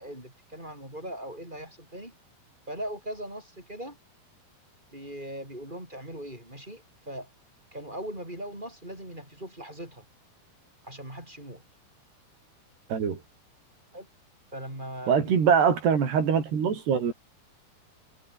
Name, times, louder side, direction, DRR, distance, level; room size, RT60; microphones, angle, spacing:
voice 1, 0.0-2.1 2.7-4.0 4.9-7.3 7.7-10.0 10.8-11.6 13.9-14.1 14.5-15.3, right 1 dB, 10° right, 7.7 m, -39 dB
voice 2, 15.1-17.1, right 7 dB, 85° right, 6.4 m, -23 dB
omnidirectional pair, 4.6 m